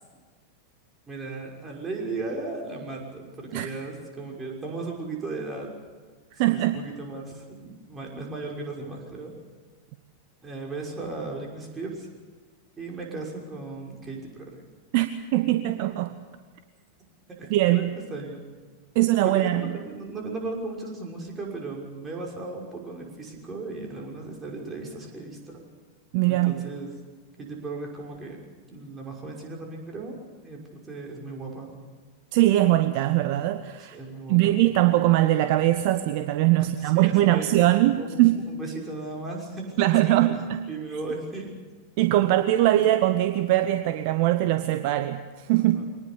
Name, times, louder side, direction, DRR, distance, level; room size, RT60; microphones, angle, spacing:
voice 1, 1.1-5.7 6.3-9.3 10.4-12.1 12.8-14.6 17.4-18.4 19.2-25.6 26.3-26.9 27.4-28.4 28.7-30.2 30.4-31.7 33.8-34.6 36.8-37.5 38.0-38.2 38.5-40.2 40.7-41.5 42.8-42.9 45.6-45.8, right 3 dB, 20° right, 0 dB, 6.1 m, -36 dB
voice 2, 6.4-6.9 14.9-16.2 17.5-17.9 18.9-19.7 26.1-26.6 32.3-34.0 34.3-38.5 39.8-40.6 42.0-45.8, right 15 dB, 45° right, 10 dB, 1.0 m, -21 dB
24.0 x 19.5 x 7.0 m, 1.5 s
figure-of-eight pair, 90°, 0 cm